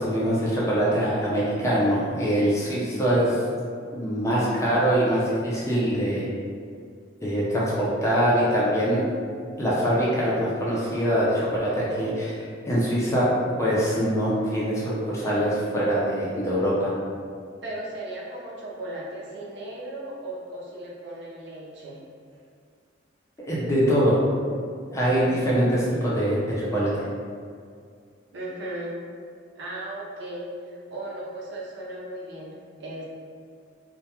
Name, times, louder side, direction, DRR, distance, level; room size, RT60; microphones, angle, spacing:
voice 1, 0.0-3.4 3.9-6.3 7.2-9.0 9.6-12.4 12.7-13.3 13.6-16.9 23.4-24.1 24.9-27.1, equal, 15° left, -7 dB, 0.5 m, -23 dB
voice 2, 17.6-22.0 25.1-25.3 28.3-29.0 29.6-33.0, right 1 dB, 60° right, -5 dB, 0.5 m, -36 dB
2.2 x 2.2 x 2.8 m, 2.2 s
head